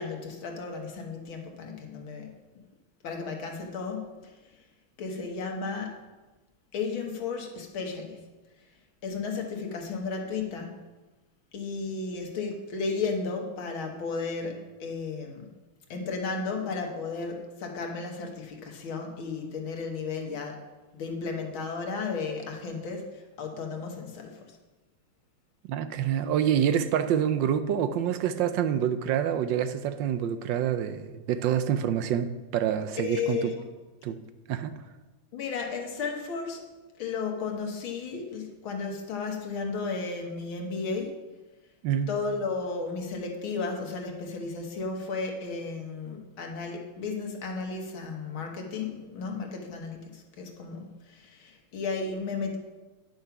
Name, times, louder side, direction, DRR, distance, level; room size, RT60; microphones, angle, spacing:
voice 1, 0.0-2.3 3.0-4.4 5.0-6.0 6.7-8.2 9.0-10.7 11.5-15.5 15.9-20.6 20.9-24.4 33.0-33.5 35.3-36.6 37.0-41.2 42.1-52.6, left 4 dB, 85° left, 2 dB, 2.2 m, -34 dB
voice 2, 25.7-33.5 34.0-34.2 34.5-34.7 41.8-42.1, right 9 dB, 75° right, 10 dB, 1.2 m, -27 dB
10.5 x 6.5 x 5.8 m, 1.2 s
omnidirectional pair, 2.2 m